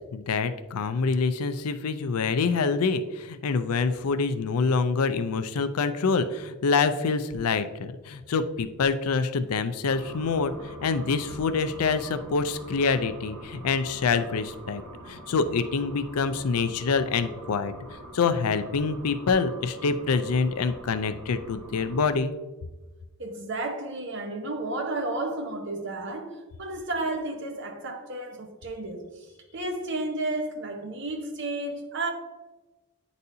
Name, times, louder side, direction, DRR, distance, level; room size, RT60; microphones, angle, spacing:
voice 1, 0.1-17.7 18.1-22.3, left 4 dB, 85° left, 0.5 m, -26 dB
sound 1, 9.9-22.2, right 1 dB, 80° right, 1.0 m, -45 dB
voice 2, 23.2-29.3 29.5-32.1, right 2 dB, 55° right, 0.9 m, -32 dB
9.4 x 4.1 x 2.7 m
head